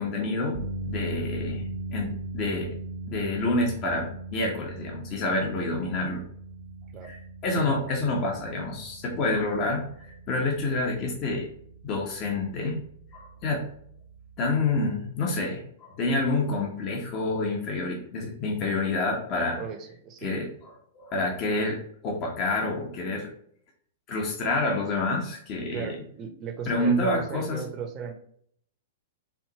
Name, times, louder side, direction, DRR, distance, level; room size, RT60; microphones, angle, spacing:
voice 1, 0.0-2.7 3.1-6.2 7.0-7.2 7.4-11.5 11.8-12.8 13.1-13.7 14.4-19.6 20.2-20.5 20.9-21.8 22.0-23.3 24.1-26.0 26.7-27.6, left 2 dB, 35° left, 0 dB, 1.0 m, -28 dB
sound 1, 0.5-14.8, right 2 dB, 60° right, 0.9 m, -39 dB
voice 2, 19.5-20.5 25.7-28.1, right 6 dB, 30° right, 5 dB, 0.8 m, -37 dB
4.7 x 2.9 x 2.9 m, 0.66 s
figure-of-eight pair, 105°, 0 cm